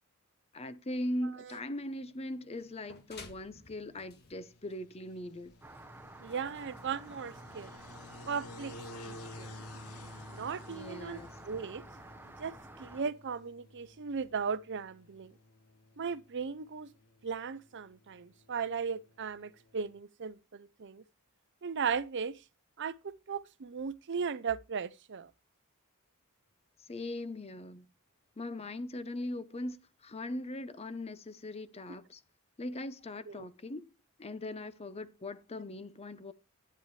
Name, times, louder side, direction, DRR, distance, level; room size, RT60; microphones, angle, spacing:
voice 1, 0.5-5.5 10.7-11.3 26.8-27.9 28.4-32.2 32.6-33.9 34.2-36.3, left 1 dB, 25° left, 0.7 m, -40 dB
sound 1, 1.9-20.0, left 2 dB, 80° left, 1.0 m, -53 dB
sound 2, 2.6-7.9, left 4 dB, 45° left, 1.9 m, -56 dB
Rain, 5.6-13.0, right 2 dB, 10° right, 1.0 m, -51 dB
voice 2, 6.2-7.7 8.3-8.7 9.0-9.6 10.3-11.2 11.4-11.8 12.4-12.5 12.8-15.3 16.0-16.9 17.2-21.0 21.6-22.3 22.8-25.3 33.3-33.5, right 6 dB, 55° right, 0.6 m, -37 dB
11.0 x 8.9 x 3.2 m
head